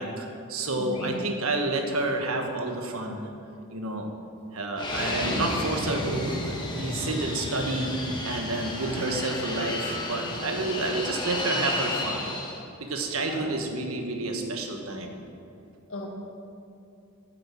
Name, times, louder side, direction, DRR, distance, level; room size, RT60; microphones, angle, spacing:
voice 1, 0.0-3.2 3.7-4.1 4.5-8.0 8.2-12.3 12.8-15.1, right 2 dB, 70° right, 3 dB, 1.4 m, -30 dB
voice 2, 0.8-1.1 8.1-8.4 13.3-13.5 15.9-16.1, left 1 dB, 65° left, -1 dB, 2.2 m, -38 dB
Fixed-wing aircraft airplane, 4.8-12.6, left 1 dB, 20° left, 1.5 m, -32 dB
9.9 x 7.7 x 7.6 m, 2.6 s
head